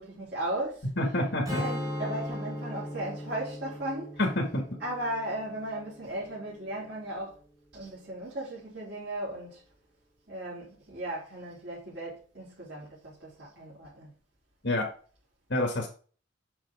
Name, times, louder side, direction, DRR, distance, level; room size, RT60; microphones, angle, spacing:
voice 1, 0.0-0.9 1.5-4.2 4.8-7.4 7.7-9.6 10.3-14.1, right 1 dB, 60° right, 3.5 m, -36 dB
voice 2, 1.0-1.6 4.2-4.6 14.6-14.9 15.5-15.9, left 1 dB, 60° left, 2.0 m, -27 dB
Strum, 1.5-6.8, equal, 20° right, 3.5 m, -38 dB
7.4 x 6.1 x 3.7 m
head